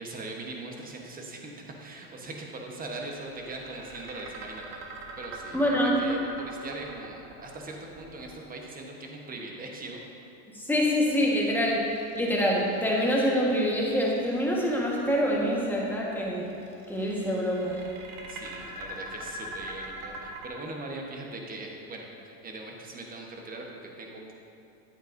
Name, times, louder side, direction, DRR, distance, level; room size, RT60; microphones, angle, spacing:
voice 1, 0.0-4.8 5.2-10.0 18.3-24.3, right 2 dB, 20° right, 1 dB, 1.1 m, -40 dB
sound 1, 2.7-8.9 11.7-13.3 13.9-15.2 16.5-20.5, right 1 dB, 50° right, 1.6 m, -43 dB
voice 2, 5.5-6.0 10.5-16.5 16.9-17.9, equal, 5° left, -4 dB, 1.4 m, -26 dB
10.5 x 8.8 x 2.7 m, 2.6 s
supercardioid pair, 115°, 46 cm